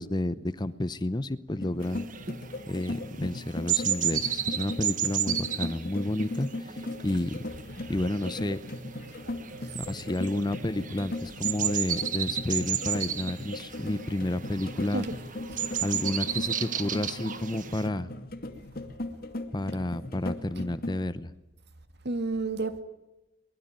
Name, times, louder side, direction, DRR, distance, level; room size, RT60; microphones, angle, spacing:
voice 1, 0.0-2.1 2.7-7.4 7.9-8.6 9.9-15.0 15.8-18.1 19.5-21.3, left 1 dB, 20° left, 0.8 m, -31 dB
sound 1, 1.5-21.0, left 1 dB, 50° left, 2.3 m, -38 dB
sound 2, 1.8-17.9, right 9 dB, 45° right, 1.7 m, -33 dB
voice 2, 14.8-15.2 15.5-15.8 22.0-22.8, right 3 dB, 60° right, 2.2 m, -32 dB
23.5 x 21.0 x 9.2 m
head